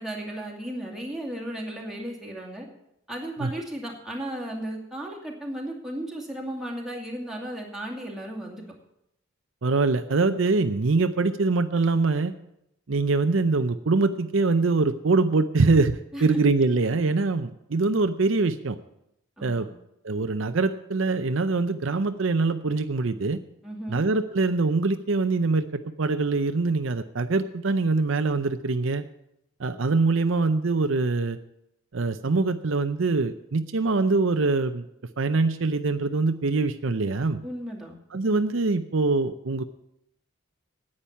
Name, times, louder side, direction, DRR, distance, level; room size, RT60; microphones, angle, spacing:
voice 1, 0.0-2.7 3.1-8.6 16.1-16.4 19.4-19.7 23.6-24.0 37.4-37.9, right 1 dB, ahead, -2 dB, 2.5 m, -35 dB
voice 2, 9.6-12.3 12.9-18.8 19.4-19.7 20.0-23.4 23.9-29.0 29.6-31.4 31.9-34.8 35.2-37.4 38.1-39.6, right 3 dB, 65° right, 9 dB, 0.6 m, -24 dB
10.0 x 8.8 x 9.7 m, 0.81 s
head